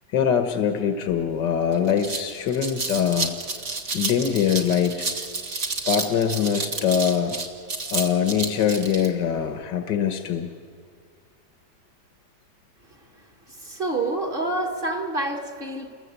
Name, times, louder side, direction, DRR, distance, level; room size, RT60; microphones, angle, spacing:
voice 1, 0.1-3.3 3.9-5.1 5.9-7.4 7.9-10.5, left 8 dB, 85° left, 6 dB, 1.8 m, -23 dB
sound 1, 1.3-1.4 1.7-9.1, right 3 dB, 50° right, 2.4 m, -30 dB
voice 2, 13.5-15.9, right 2 dB, 30° right, 3 dB, 2.2 m, -28 dB
28.5 x 22.0 x 8.2 m, 2.1 s
omnidirectional pair, 1.9 m